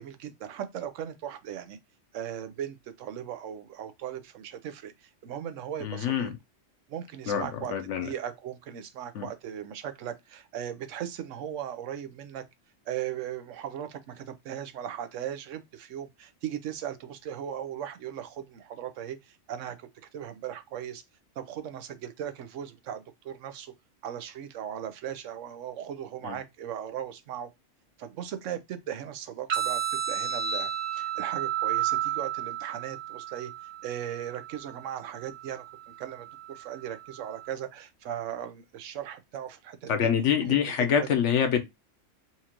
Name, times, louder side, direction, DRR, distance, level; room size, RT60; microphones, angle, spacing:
voice 1, 0.0-1.8 2.1-6.3 6.9-12.4 12.9-21.0 21.4-23.7 24.0-27.5 28.0-33.5 33.8-40.1 40.4-40.7 41.0-41.1, right 10 dB, 85° right, 1.0 m, -38 dB
voice 2, 5.8-6.3 7.3-8.1 9.2-9.3 26.2-26.4 39.9-41.7, left 8 dB, 75° left, 1.1 m, -26 dB
sound 1, 29.5-37.5, right 10 dB, 65° right, 1.1 m, -33 dB
4.3 x 2.5 x 2.8 m
omnidirectional pair, 1.3 m